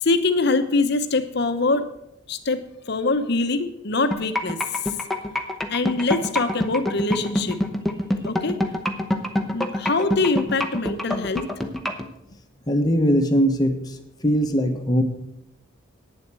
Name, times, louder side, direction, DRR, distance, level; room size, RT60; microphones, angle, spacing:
voice 1, 0.0-1.9 2.3-4.8 5.7-7.8 8.2-8.6 9.5-11.4, left 3 dB, 55° left, 9 dB, 0.9 m, -24 dB
sound 1, 4.1-12.0, left 1 dB, ahead, 0.9 m, -24 dB
voice 2, 12.7-15.0, equal, 20° left, 4 dB, 1.1 m, -21 dB
9.3 x 7.7 x 7.6 m, 0.82 s
head